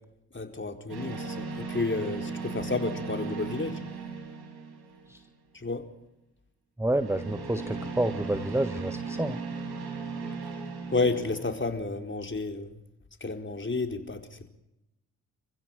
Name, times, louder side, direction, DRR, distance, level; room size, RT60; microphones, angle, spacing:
voice 1, 0.3-3.8 5.5-5.8 10.9-12.7 13.2-14.5, left 3 dB, 30° left, 4.4 m, -31 dB
sound 1, 0.9-5.4 6.9-11.7, right 4 dB, 75° right, 7.1 m, -37 dB
voice 2, 6.8-9.4, right 1 dB, 5° right, 1.5 m, -28 dB
29.5 x 15.5 x 9.1 m
hypercardioid pair, 40°, 39 cm